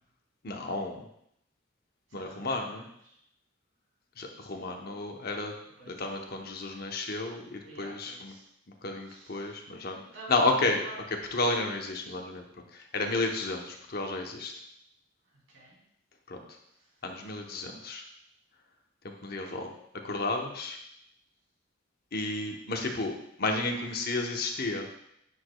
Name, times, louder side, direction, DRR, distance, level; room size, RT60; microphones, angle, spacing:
voice 1, 0.4-1.0 2.1-2.8 4.2-5.5 5.8-8.3 8.8-10.0 10.3-10.8 11.3-12.4 12.7-14.5 16.3-16.4 17.0-18.0 19.0-19.7 20.0-20.8 22.1-23.1 23.4-24.9, left 2 dB, 50° left, 3 dB, 0.9 m, -32 dB
voice 2, 2.1-3.2 5.6-6.0 7.6-8.5 9.0-9.6 10.1-10.4 10.8-11.0 15.2-15.8 16.7-17.0, right 2 dB, 80° right, -4 dB, 2.8 m, -50 dB
10.0 x 5.0 x 2.3 m, 0.76 s
head